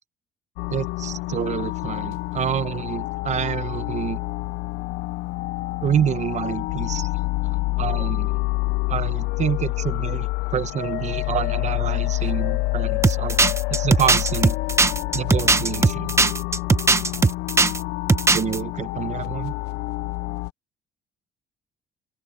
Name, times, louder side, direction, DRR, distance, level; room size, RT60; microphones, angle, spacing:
sound 1, 0.6-20.5, left 21 dB, 85° left, 0.5 m, -27 dB
voice 1, 0.7-4.2 5.8-7.1 7.8-8.4 8.9-13.4 13.7-14.6 15.1-16.1 18.3-19.5, right 9 dB, 45° right, 0.9 m, -27 dB
sound 2, 13.0-17.8 18.1-18.6, right 3 dB, 15° right, 0.9 m, -18 dB
open air
cardioid pair, 110°, 17 cm